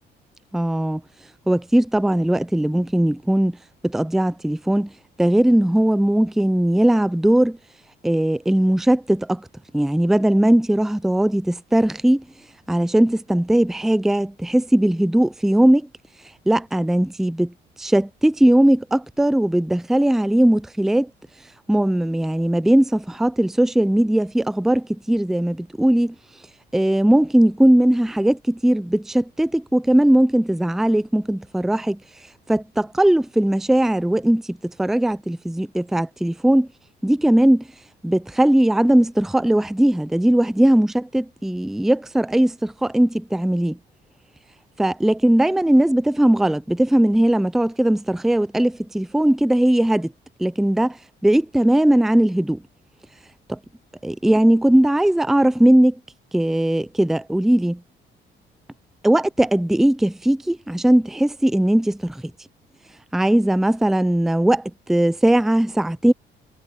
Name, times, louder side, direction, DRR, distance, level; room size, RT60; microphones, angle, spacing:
voice 1, 0.5-1.0 1.5-3.6 3.8-4.9 5.2-7.6 8.0-9.5 9.7-12.2 12.7-15.9 16.5-17.5 17.8-21.1 21.7-26.1 26.7-32.0 32.5-36.7 37.0-37.6 38.0-43.8 44.8-50.1 50.4-51.0 51.2-52.6 53.5-53.6 54.0-56.0 56.3-57.8 59.0-62.2 63.1-66.1, right 1 dB, ahead, 0.5 m, -19 dB
cardioid pair, 90°, 20 cm